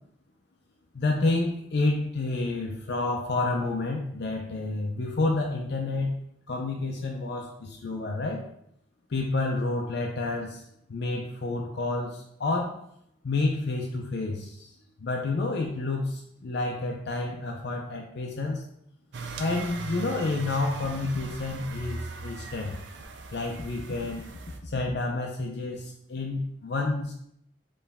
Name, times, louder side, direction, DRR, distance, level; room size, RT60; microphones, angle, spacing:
voice 1, 0.9-6.2 6.5-8.4 9.1-10.6 10.9-12.8 13.2-14.7 15.0-18.6 19.4-22.8 23.3-24.2 24.6-27.1, left 2 dB, 60° left, 0 dB, 0.5 m, -29 dB
sound 1, 19.1-24.6, right 4 dB, 70° right, 0.5 m, -39 dB
4.5 x 3.2 x 3.4 m, 0.72 s
head